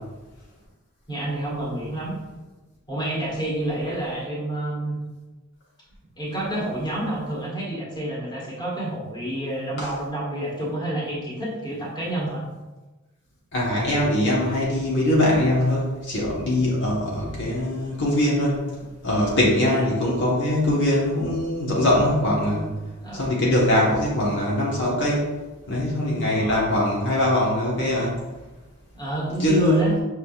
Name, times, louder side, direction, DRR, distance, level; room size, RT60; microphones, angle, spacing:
voice 1, 1.1-2.2 2.9-5.0 6.2-12.4 19.7-19.8 23.0-23.3 26.3-26.6 28.9-30.0, right 1 dB, 20° left, -6 dB, 1.5 m, -29 dB
voice 2, 13.5-18.6 19.0-22.7 23.1-25.3 25.7-28.2 29.4-30.0, left 1 dB, 60° left, -5 dB, 1.1 m, -22 dB
6.0 x 3.6 x 2.4 m, 1.1 s
head